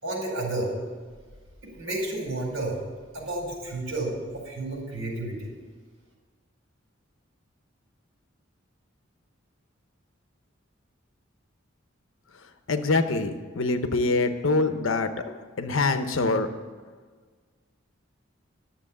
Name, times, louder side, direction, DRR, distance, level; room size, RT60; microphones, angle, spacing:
voice 1, 0.0-0.7 1.7-2.8 3.1-5.5, right 2 dB, 75° right, -1 dB, 4.5 m, -31 dB
voice 2, 12.7-16.5, left 3 dB, 75° left, 8 dB, 0.9 m, -25 dB
11.5 x 7.2 x 8.5 m, 1.5 s
head